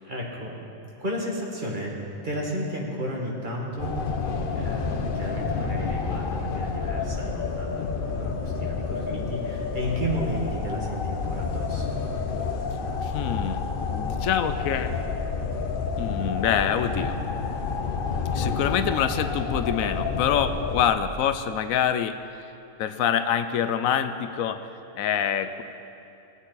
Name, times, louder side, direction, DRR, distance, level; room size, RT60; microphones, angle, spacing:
voice 1, 0.1-0.6 1.0-2.0 2.2-3.9 4.5-12.0, equal, 35° right, -3 dB, 1.9 m, -33 dB
sound 1, 3.8-20.9, left 4 dB, 50° left, 0.7 m, -29 dB
voice 2, 13.0-14.9 16.0-17.2 18.3-22.2 22.8-24.7 25.0-25.6, left 9 dB, 85° left, 10 dB, 1.0 m, -26 dB
19.5 x 8.1 x 4.0 m, 2.8 s
omnidirectional pair, 1.4 m